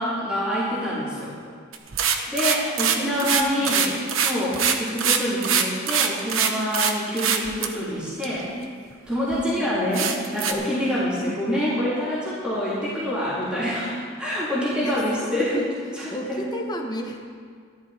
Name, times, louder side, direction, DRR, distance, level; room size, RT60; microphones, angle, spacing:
voice 1, 0.0-1.3 2.3-8.5 9.1-15.6 16.0-16.1 16.3-16.4, equal, 5° right, -11 dB, 3.7 m, -26 dB
sound 1, 1.7-6.9 7.2-7.7 8.2-8.3 8.9-9.0 9.3-9.4 9.9-10.5, right 7 dB, 75° right, 1.0 m, -22 dB
voice 2, 2.8-3.8 4.8-5.1 9.4-9.8 14.8-17.4, equal, 20° left, 2 dB, 1.2 m, -35 dB
13.5 x 13.0 x 4.5 m, 2.1 s
head